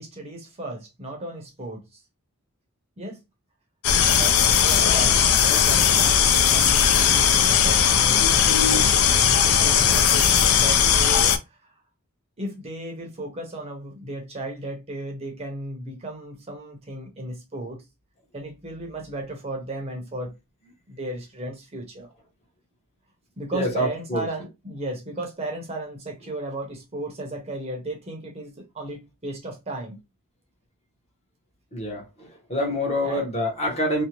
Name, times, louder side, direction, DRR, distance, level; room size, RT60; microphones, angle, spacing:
voice 1, 0.0-2.0 3.0-3.2 4.1-11.7 12.4-17.8 18.3-20.3 20.9-22.1 23.4-30.0 33.0-33.2, right 1 dB, 25° right, 0.6 m, -35 dB
sound 1, 3.8-11.4, left 8 dB, 70° left, 0.4 m, -18 dB
voice 2, 23.5-24.3 31.7-34.0, left 1 dB, 30° left, 0.8 m, -26 dB
2.6 x 2.1 x 2.9 m
head